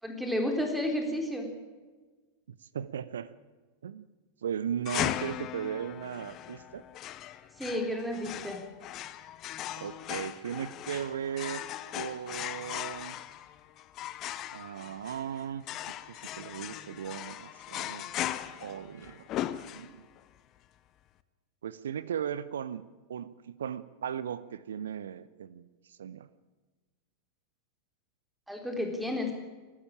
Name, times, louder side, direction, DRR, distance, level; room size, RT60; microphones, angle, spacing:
voice 1, 0.0-1.5 7.6-8.6 28.5-29.3, left 1 dB, ahead, 3 dB, 4.0 m, -31 dB
voice 2, 2.5-3.3 3.8-4.1 4.4-6.8 9.7-11.6 11.9-13.2 14.5-15.6 16.1-18.1 18.6-19.3 19.7-20.1 21.6-22.8 23.1-26.3, right 8 dB, 65° right, 17 dB, 0.7 m, -37 dB
trying to cut wire, 4.8-20.2, left 12 dB, 35° left, 1.0 m, -38 dB
23.5 x 12.5 x 8.8 m, 1.3 s
figure-of-eight pair, 90°, 0 cm